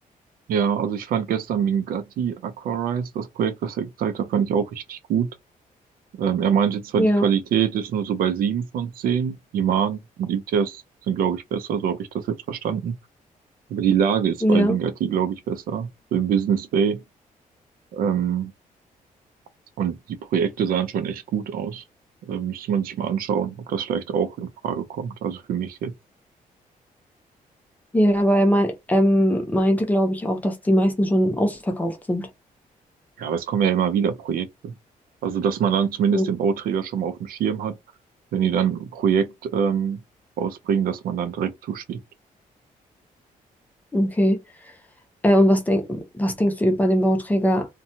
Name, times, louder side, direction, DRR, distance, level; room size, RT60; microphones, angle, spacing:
voice 1, 0.5-5.3 6.2-12.9 13.7-17.0 17.9-18.5 19.8-20.0 20.3-21.8 22.2-25.9 33.2-34.7 35.2-37.7 38.3-40.0 40.4-42.0, right 7 dB, 80° right, 0.5 m, -24 dB
voice 2, 7.0-7.3 14.4-14.8 27.9-32.3 36.1-36.3 43.9-44.4 45.2-47.7, equal, 10° left, 0.6 m, -20 dB
2.7 x 2.2 x 2.6 m
cardioid pair, 160°, 15 cm